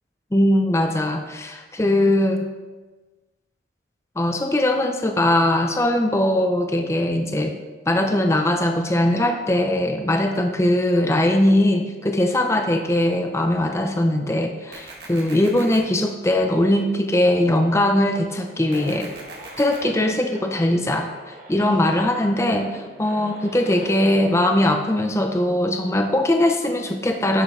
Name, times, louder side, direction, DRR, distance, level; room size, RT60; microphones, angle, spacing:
voice 1, 0.3-2.5 4.2-7.6 7.9-19.1 19.6-27.4, left 1 dB, 15° left, 5 dB, 0.5 m, -20 dB
sound 1, 14.7-15.8 18.7-19.8, right 3 dB, 70° right, 1.7 m, -40 dB
sound 2, 18.2-24.7, right 1 dB, 45° right, 1.5 m, -41 dB
10.5 x 7.1 x 3.3 m, 1.2 s
head